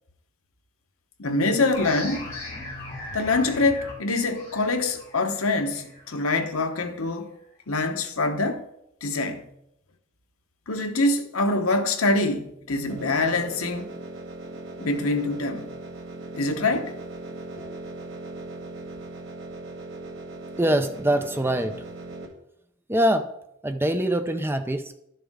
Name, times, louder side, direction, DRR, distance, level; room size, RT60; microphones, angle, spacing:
voice 1, 1.2-2.3 3.1-7.3 7.7-8.6 9.0-9.5 10.7-14.0 14.8-15.7 16.3-16.9, left 2 dB, 75° left, 1.1 m, -25 dB
sound 1, 1.7-7.1, left 2 dB, 15° left, 4.1 m, -39 dB
sound 2, 12.9-22.3, right 2 dB, 65° right, 1.9 m, -39 dB
voice 2, 20.6-21.8 22.9-23.3 23.6-25.1, right 1 dB, 10° right, 0.5 m, -24 dB
12.0 x 6.9 x 3.7 m
head